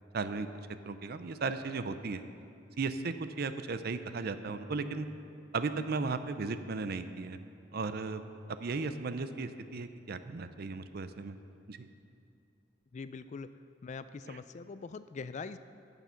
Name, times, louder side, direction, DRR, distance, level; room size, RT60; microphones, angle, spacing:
voice 1, 0.1-0.5 0.9-2.2 2.8-5.1 5.5-7.4 7.7-8.2 8.5-11.4 11.7-11.9 14.3-14.4, right 4 dB, 55° right, 11 dB, 0.5 m, -36 dB
voice 2, 12.9-13.5 13.8-15.6, left 4 dB, 35° left, 13 dB, 0.3 m, -42 dB
15.0 x 6.9 x 5.7 m, 2.6 s
head